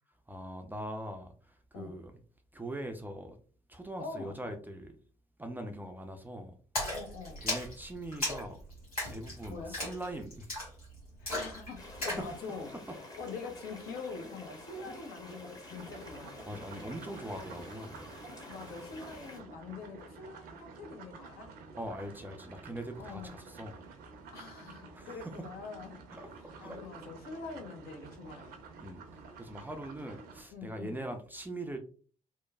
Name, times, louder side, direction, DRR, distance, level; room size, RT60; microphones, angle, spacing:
voice 1, 0.3-2.1 2.5-3.4 3.7-5.0 5.4-6.6 7.4-8.6 9.1-10.5 12.2-12.3 12.9-13.0 16.5-18.0 21.8-23.8 24.9-25.5 26.1-26.3 26.6-26.8 28.8-29.0 29.4-31.8, right 1 dB, 10° right, 0.4 m, -41 dB
voice 2, 4.0-4.4 6.9-7.4 9.5-9.8 11.2-12.7 13.2-16.4 18.5-21.5 23.0-23.3 24.3-26.0 26.6-28.5 30.5-31.0, left 4 dB, 60° left, 0.7 m, -44 dB
Splash splatter, 6.7-12.3, left 1 dB, 90° left, 0.9 m, -37 dB
sound 1, 11.8-19.4, left 1 dB, 20° left, 0.9 m, -48 dB
sound 2, 15.7-30.4, right 4 dB, 60° right, 0.6 m, -50 dB
3.0 x 2.2 x 2.2 m
figure-of-eight pair, 45°, 18 cm